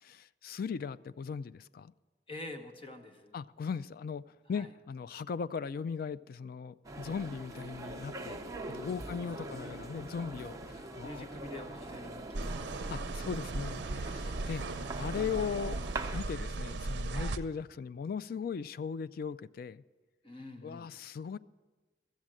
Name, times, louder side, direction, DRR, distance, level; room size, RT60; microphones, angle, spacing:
voice 1, 0.0-1.9 3.3-4.2 4.5-8.4 8.7-11.3 12.9-15.8 16.1-19.8 20.6-21.4, left 6 dB, 55° left, 16 dB, 0.3 m, -38 dB
voice 2, 2.3-3.3 4.5-4.7 9.1-9.8 11.0-12.9 17.1-17.4 20.2-20.9, left 1 dB, 30° left, 6 dB, 1.1 m, -47 dB
sound 1, 6.8-16.2, right 2 dB, 20° right, 0.8 m, -43 dB
sound 2, 12.3-17.4, right 2 dB, 85° right, 0.6 m, -37 dB
14.5 x 7.3 x 7.5 m, 1.3 s
head